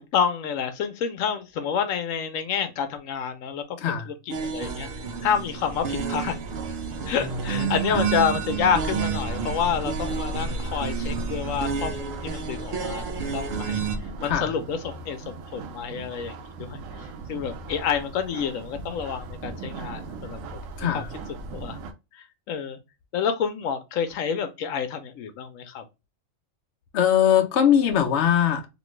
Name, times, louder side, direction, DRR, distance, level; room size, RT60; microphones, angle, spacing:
voice 1, 0.0-3.8 4.1-4.2 4.4-4.9 5.2-6.4 7.1-13.0 13.3-13.8 14.2-20.4 20.9-21.0 21.5-21.8 22.1-22.8 23.1-25.8, left 7 dB, 85° left, 1.0 m, -28 dB
sound 1, 4.3-14.0, right 5 dB, 60° right, 0.7 m, -30 dB
sound 2, 5.2-21.9, right 3 dB, 85° right, 1.0 m, -39 dB
voice 2, 7.2-8.0 14.3-14.5 20.8-21.1 26.9-28.7, left 9 dB, 65° left, 0.9 m, -22 dB
3.0 x 2.6 x 3.0 m
omnidirectional pair, 1.3 m